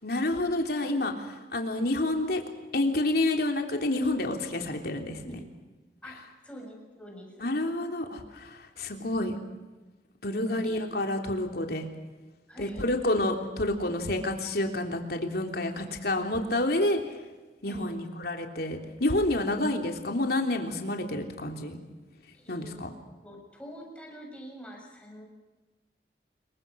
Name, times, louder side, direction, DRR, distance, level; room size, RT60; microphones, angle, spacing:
voice 1, 0.0-1.1 1.5-5.4 7.4-9.3 10.2-11.9 12.6-17.0 17.6-21.8 22.5-22.9, left 1 dB, 60° left, 3 dB, 3.4 m, -29 dB
voice 2, 6.0-7.6 10.3-10.8 12.5-12.9 17.7-18.0 22.3-22.9 23.2-25.2, equal, 5° left, 0 dB, 6.8 m, -46 dB
26.5 x 23.5 x 6.4 m, 1.2 s
head